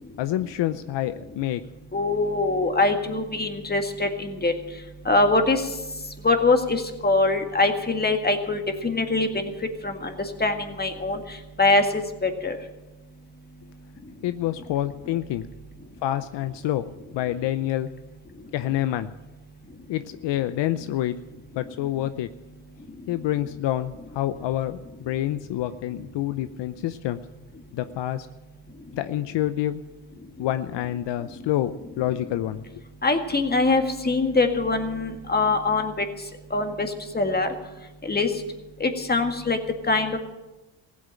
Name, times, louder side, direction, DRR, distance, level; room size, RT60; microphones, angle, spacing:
voice 1, 0.2-1.6 14.2-15.5 16.0-16.9 17.1-17.9 18.5-19.1 19.9-21.2 21.6-22.3 23.1-27.2 27.7-28.3 28.9-29.8 30.4-32.6, left 13 dB, 70° left, 12 dB, 0.7 m, -27 dB
voice 2, 1.9-4.5 5.1-5.6 6.2-9.5 9.8-10.2 10.4-11.2 11.6-12.6 33.0-36.1 36.5-37.5 38.0-38.3 38.8-39.6 39.9-40.2, left 3 dB, 20° left, 6 dB, 2.0 m, -23 dB
15.5 x 8.6 x 9.0 m, 1.1 s
cardioid pair, 85°, 44 cm